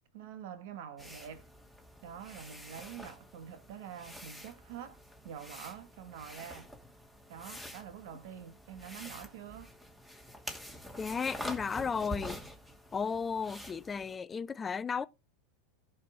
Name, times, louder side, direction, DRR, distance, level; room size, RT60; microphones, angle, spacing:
voice 1, 0.1-1.5 2.0-6.7 7.3-9.7, right 9 dB, 60° right, 1.8 m, -46 dB
sound 1, 1.0-14.2, equal, 5° right, 2.6 m, -47 dB
voice 2, 11.0-12.4 12.9-15.1, left 6 dB, 20° left, 0.4 m, -34 dB
16.5 x 6.4 x 3.8 m
hypercardioid pair, 90°, 0 cm